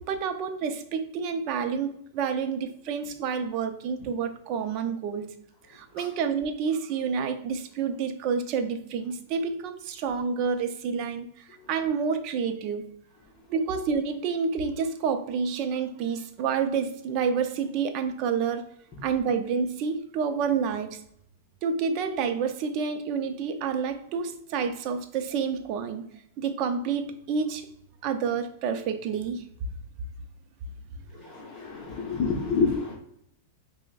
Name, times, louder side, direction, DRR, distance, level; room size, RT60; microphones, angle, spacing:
voice 1, 0.0-5.3 5.7-12.9 13.5-18.6 19.0-21.0 21.6-26.1 26.4-27.7 28.0-29.5, right 6 dB, 45° right, 8 dB, 0.4 m, -29 dB
voice 2, 31.1-33.0, left 5 dB, 40° left, -1 dB, 0.8 m, -28 dB
5.9 x 2.1 x 2.3 m, 0.71 s
supercardioid pair, 140°, 0 cm